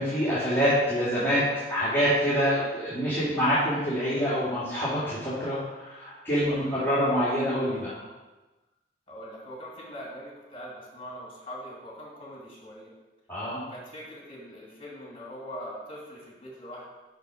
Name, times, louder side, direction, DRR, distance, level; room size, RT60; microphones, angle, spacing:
voice 1, 0.0-7.9 13.3-13.6, equal, 10° left, -13 dB, 2.6 m, -26 dB
voice 2, 6.4-6.8 9.1-12.9 13.7-16.9, equal, 30° left, -3 dB, 2.5 m, -42 dB
6.6 x 6.5 x 5.0 m, 1.1 s
head